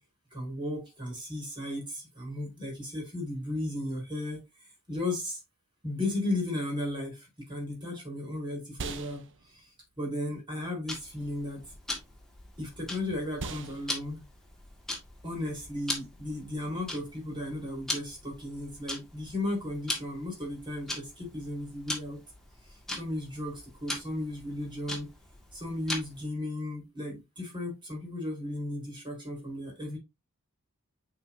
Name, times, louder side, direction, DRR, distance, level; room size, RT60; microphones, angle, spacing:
voice 1, 0.3-5.4 5.8-9.7 10.0-11.7 12.6-14.2 15.2-22.2 22.7-25.1 25.5-30.0, left 1 dB, 20° right, 4.1 m, -35 dB
sound 1, 7.4-17.0, right 4 dB, 55° right, 0.8 m, -46 dB
Tick-tock, 10.9-26.3, left 1 dB, ahead, 1.8 m, -41 dB
8.2 x 5.0 x 2.7 m
head